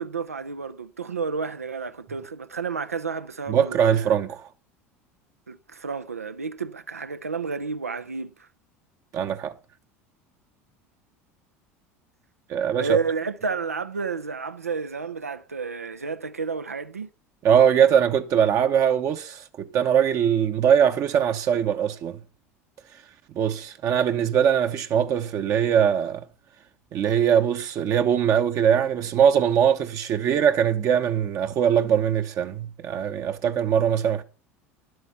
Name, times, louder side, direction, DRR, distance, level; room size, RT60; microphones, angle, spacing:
voice 1, 0.0-4.2 5.5-8.5 12.6-17.1, right 5 dB, 90° right, 0.6 m, -31 dB
voice 2, 3.5-4.5 9.1-9.5 12.5-13.0 17.4-22.2 23.3-26.2 26.9-34.2, right 8 dB, 45° right, 0.9 m, -21 dB
11.0 x 7.8 x 5.7 m
figure-of-eight pair, 75°, 8 cm